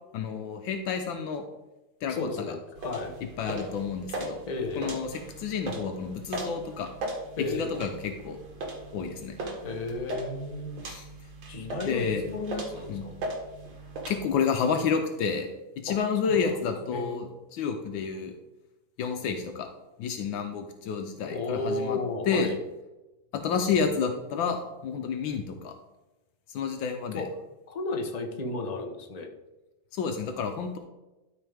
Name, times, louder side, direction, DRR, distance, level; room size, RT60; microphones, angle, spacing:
voice 1, 0.1-1.4 2.0-2.5 3.4-4.4 4.8-6.9 7.5-8.4 8.9-9.4 10.8-11.1 11.9-12.2 12.9-13.0 14.1-15.5 15.8-18.3 19.0-19.7 20.0-22.0 22.3-22.5 23.3-25.8 26.5-27.2 29.9-30.8, left 6 dB, 80° left, 5 dB, 1.5 m, -30 dB
voice 2, 2.1-3.1 4.5-4.9 7.4-7.7 9.6-10.8 11.5-13.2 15.9-16.4 16.9-17.3 21.2-22.6 27.1-27.3 27.7-29.3, left 3 dB, 40° left, 3 dB, 0.5 m, -33 dB
sound 1, 2.8-14.2, right 2 dB, 75° right, 2.1 m, -38 dB
12.5 x 4.5 x 3.4 m, 1.0 s
omnidirectional pair, 2.1 m